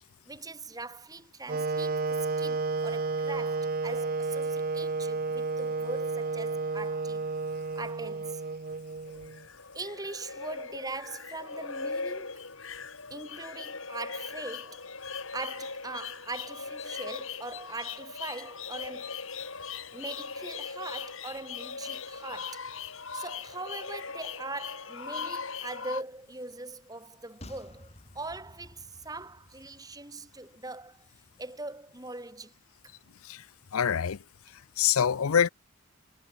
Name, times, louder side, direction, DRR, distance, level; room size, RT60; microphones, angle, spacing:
voice 1, 0.3-7.2 7.8-8.4 9.7-12.5 13.1-19.2 19.9-22.7 23.1-31.1 31.4-32.5 32.8-32.9, right 3 dB, 15° right, 2.4 m, -41 dB
Wind instrument woodwind instrument, 1.5-9.4, right 3 dB, 40° right, 0.6 m, -31 dB
sound 1, 9.1-26.0, left 5 dB, 70° left, 4.2 m, -39 dB
sound 2, 27.4-30.8 31.1-31.2, left 1 dB, 30° left, 3.9 m, -52 dB
voice 2, 33.7-34.2 34.8-35.5, left 8 dB, 85° left, 0.5 m, -25 dB
head